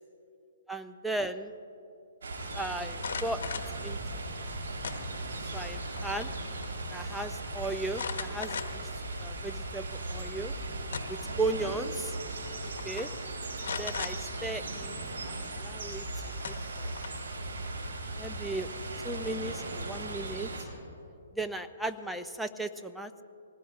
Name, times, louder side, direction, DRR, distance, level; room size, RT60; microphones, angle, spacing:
voice 1, 0.7-1.5 2.5-4.0 5.5-6.3 6.9-8.9 9.2-10.5 11.1-12.1 12.8-13.1 13.8-15.0 15.2-16.0 16.4-16.9 18.2-18.7 19.0-20.5 21.4-23.2, right 2 dB, ahead, 7 dB, 0.6 m, -36 dB
sound 1, 2.2-20.6, right 2 dB, 75° right, 4.2 m, -38 dB
sound 2, 2.9-3.8 4.8-5.4 5.8-6.4 6.6-6.7 7.9-8.9 9.5-9.6 10.6-11.3 12.3-12.5 12.8-13.1 13.6-14.1 15.9-16.0 16.4-17.3, left 6 dB, 70° left, 1.3 m, -38 dB
24.5 x 19.5 x 2.5 m, 2.8 s
hypercardioid pair, 140°, 0 cm